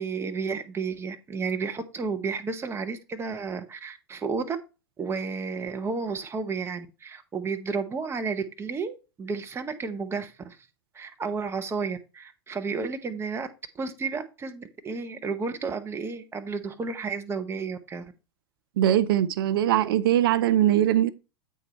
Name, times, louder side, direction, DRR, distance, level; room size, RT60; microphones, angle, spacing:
voice 1, 0.0-4.6 5.0-10.6 10.9-13.5 13.7-18.1, right 4 dB, 15° right, 1.0 m, -32 dB
voice 2, 18.8-21.1, right 12 dB, 55° right, 0.5 m, -21 dB
8.3 x 4.6 x 4.2 m
figure-of-eight pair, 90°, 14 cm